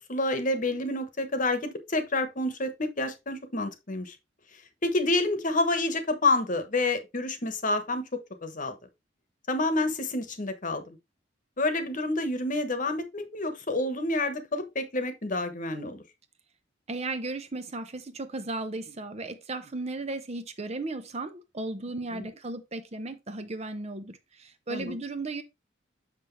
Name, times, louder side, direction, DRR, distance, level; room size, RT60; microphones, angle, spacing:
voice 1, 0.1-4.2 4.8-8.8 9.5-11.0 11.6-16.0 22.1-22.3 24.7-24.9, left 2 dB, 40° left, 1.2 m, -28 dB
voice 2, 16.9-25.4, right 2 dB, 35° right, 0.7 m, -35 dB
6.4 x 6.0 x 3.2 m
head